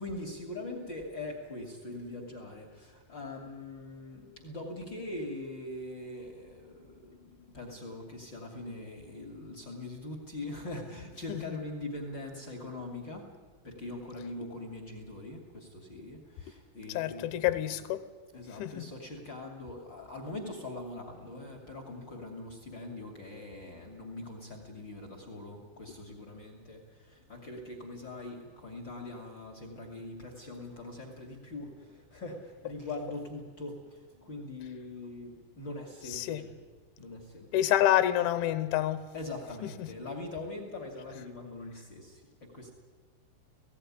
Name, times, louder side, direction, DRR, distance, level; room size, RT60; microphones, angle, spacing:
voice 1, 0.0-13.3 13.6-17.6 18.3-36.6 37.0-37.7 39.1-42.7, left 2 dB, 35° left, 3 dB, 2.1 m, -42 dB
voice 2, 16.9-18.0 18.6-18.9 36.1-36.4 37.5-39.1 39.8-39.9, left 13 dB, 85° left, 12 dB, 3.2 m, -27 dB
17.5 x 16.5 x 9.9 m, 1.4 s
omnidirectional pair, 5.6 m